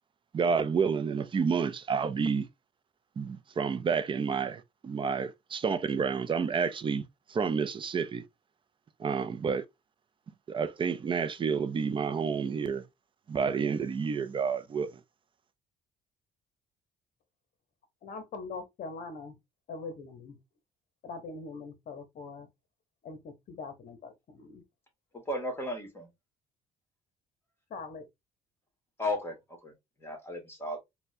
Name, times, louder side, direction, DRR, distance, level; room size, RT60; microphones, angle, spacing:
voice 1, 0.3-2.5 3.2-8.2 9.0-9.6 10.5-12.8 13.3-14.9, right 6 dB, 30° right, 0.5 m, -29 dB
voice 2, 18.0-19.4 19.7-20.4 21.0-22.5 23.0-24.6 27.7-28.1, left 4 dB, 55° left, 0.9 m, -42 dB
voice 3, 25.3-26.1 29.0-29.4 29.6-29.7 30.0-30.8, left 1 dB, 15° left, 1.6 m, -34 dB
4.2 x 2.2 x 2.6 m
cardioid pair, 110°, 17 cm